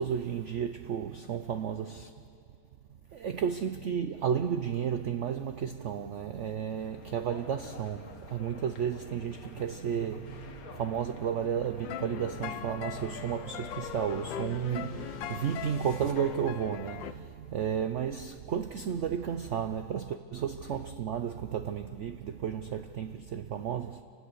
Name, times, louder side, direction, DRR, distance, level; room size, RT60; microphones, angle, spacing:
voice 1, 0.0-2.1 3.1-24.0, right 8 dB, 70° right, 0.7 m, -33 dB
sound 1, 6.8-16.9, left 5 dB, 55° left, 1.6 m, -51 dB
sound 2, 11.8-17.1, left 11 dB, 90° left, 1.4 m, -40 dB
sound 3, 12.5-16.2, left 1 dB, 20° left, 1.3 m, -54 dB
29.0 x 16.0 x 6.6 m
omnidirectional pair, 2.0 m